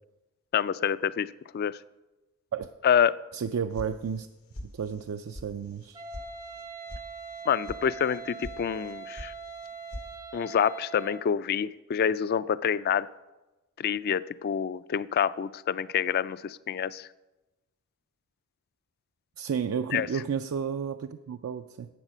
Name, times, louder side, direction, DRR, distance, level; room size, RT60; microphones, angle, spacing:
voice 1, 0.5-1.8 2.8-3.1 7.5-9.3 10.3-13.1 13.8-17.1 19.9-20.1, left 8 dB, 45° left, 18 dB, 0.3 m, -27 dB
voice 2, 3.3-4.3 4.7-6.0 19.4-21.9, right 7 dB, 75° right, 8 dB, 0.4 m, -32 dB
sound 1, 3.8-4.3 4.5-5.1 5.3-5.5 5.8-6.3 6.5-7.0 7.3-7.8 8.1-8.6 8.8-9.3 9.6-10.1, left 1 dB, 90° left, 1.4 m, -41 dB
Wind instrument woodwind instrument, 5.9-11.3, right 4 dB, 20° right, 0.5 m, -42 dB
10.5 x 8.0 x 6.1 m, 1.1 s
head